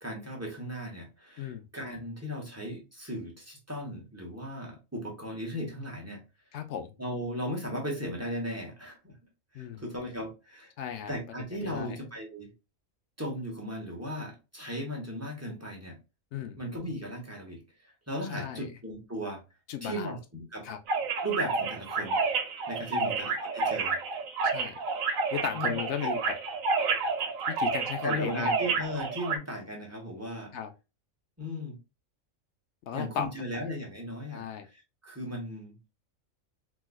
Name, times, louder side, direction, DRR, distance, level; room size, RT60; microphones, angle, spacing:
voice 1, 0.0-6.2 7.0-9.1 9.5-10.7 11.1-12.5 13.2-16.0 16.6-17.6 18.1-19.4 19.8-20.7 21.2-22.2 22.7-24.0 24.8-24.9 25.5-26.1 28.0-30.5 31.4-31.8 32.9-34.5 35.0-35.8, equal, 15° right, -1 dB, 0.8 m, -37 dB
voice 2, 6.5-6.9 9.5-9.8 10.8-11.1 11.6-12.0 16.3-16.6 18.3-18.7 19.7-20.2 20.6-20.8 22.9-23.2 24.5-24.8 25.3-26.3 27.5-28.6 30.5-30.7 32.9-33.3 33.5-33.7 34.3-34.7, left 8 dB, 65° left, 7 dB, 0.8 m, -36 dB
sound 1, 20.9-29.4, right 4 dB, 85° right, 1.1 m, -30 dB
4.0 x 2.4 x 2.2 m, 0.28 s
omnidirectional pair, 1.4 m